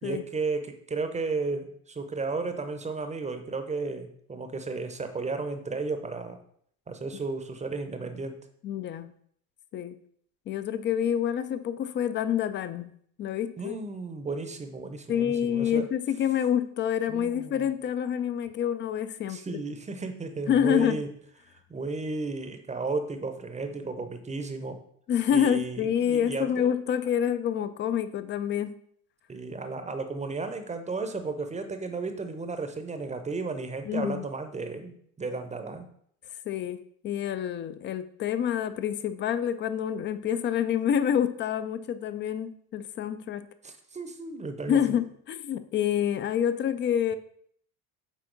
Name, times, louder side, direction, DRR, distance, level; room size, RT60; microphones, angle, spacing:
voice 1, 0.0-6.4 6.9-8.4 13.6-15.9 17.1-17.7 19.3-21.1 21.7-24.8 25.3-26.7 29.3-35.9 43.6-45.0, right 3 dB, 15° right, 8 dB, 0.7 m, -34 dB
voice 2, 8.6-9.1 9.7-10.0 10.5-12.9 13.2-13.8 15.1-19.6 20.5-21.0 25.1-28.8 33.9-34.2 36.5-36.8 37.0-43.5 44.7-47.2, left 9 dB, 25° left, 12 dB, 0.4 m, -27 dB
6.2 x 4.3 x 3.8 m, 0.64 s
hypercardioid pair, 70°, 45 cm